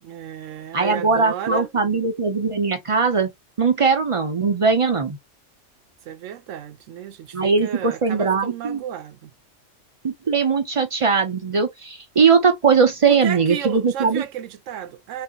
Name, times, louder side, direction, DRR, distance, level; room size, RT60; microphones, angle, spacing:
voice 1, 0.0-1.7 6.0-9.3 13.1-15.2, right 9 dB, 80° right, 1.0 m, -33 dB
voice 2, 0.7-3.3 3.6-5.2 7.3-8.8 10.0-14.2, right 5 dB, 40° right, 0.4 m, -20 dB
4.9 x 2.8 x 2.3 m
omnidirectional pair, 1.3 m